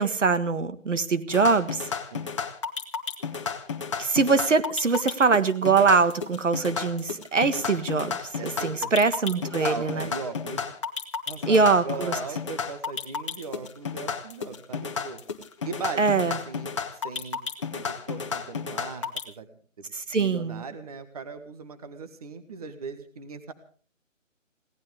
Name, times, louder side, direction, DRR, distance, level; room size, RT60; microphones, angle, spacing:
voice 1, 0.0-1.9 4.0-10.1 11.5-12.2 16.0-16.4 19.9-20.6, right 4 dB, 65° right, 11 dB, 1.7 m, -23 dB
sound 1, 1.3-19.2, left 6 dB, 25° left, 1.4 m, -32 dB
voice 2, 8.4-8.9 9.6-10.6 11.3-15.2 15.6-17.4 17.7-19.5 19.8-23.5, right 5 dB, 30° right, 9 dB, 1.5 m, -38 dB
22.0 x 17.5 x 3.5 m, 0.42 s
figure-of-eight pair, 165°, 39 cm